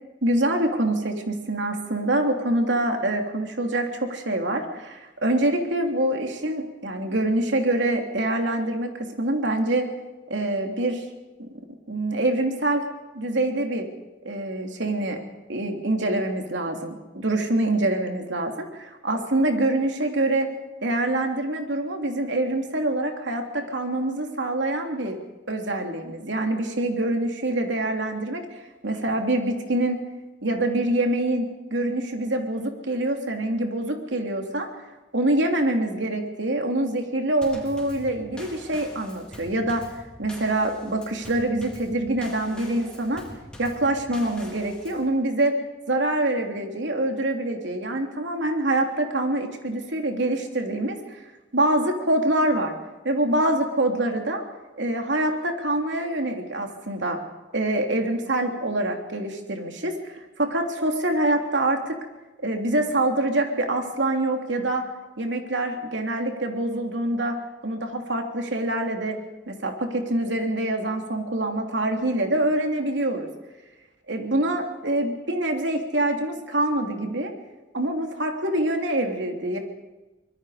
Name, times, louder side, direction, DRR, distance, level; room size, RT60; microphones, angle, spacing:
voice 1, 0.2-9.9 10.3-11.0 11.4-11.5 11.9-12.8 13.1-13.9 14.2-15.2 15.5-20.5 20.8-25.2 25.5-28.4 28.8-30.0 30.4-34.7 35.1-39.9 40.2-43.2 43.6-45.5 45.9-51.2 51.5-52.7 53.0-54.4 54.7-57.2 57.5-62.0 62.4-64.8 65.2-67.4 67.6-69.2 69.5-73.3 74.1-77.3 77.7-79.6, right 1 dB, 90° right, 3 dB, 3.1 m, -25 dB
Drum kit / Snare drum / Bass drum, 37.4-45.1, left 1 dB, 5° left, 4.3 m, -44 dB
25.0 x 21.0 x 5.1 m, 1.1 s
head